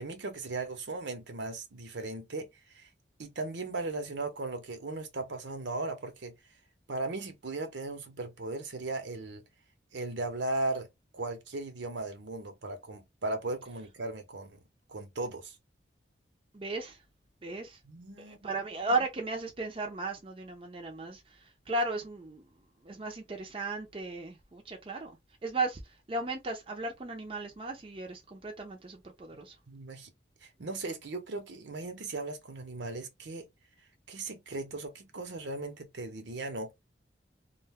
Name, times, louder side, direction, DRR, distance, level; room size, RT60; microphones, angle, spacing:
voice 1, 0.0-2.5 2.7-2.9 3.2-6.3 6.9-9.4 9.9-10.9 11.1-14.6 14.9-15.5 17.8-18.6 29.7-30.1 30.4-33.5 34.1-36.7, right 2 dB, 75° right, 0.8 m, -37 dB
voice 2, 16.5-17.0 17.4-17.8 18.2-22.5 22.8-25.1 25.4-25.8 26.1-29.5, right 2 dB, 30° right, 0.5 m, -35 dB
2.5 x 2.2 x 3.4 m
head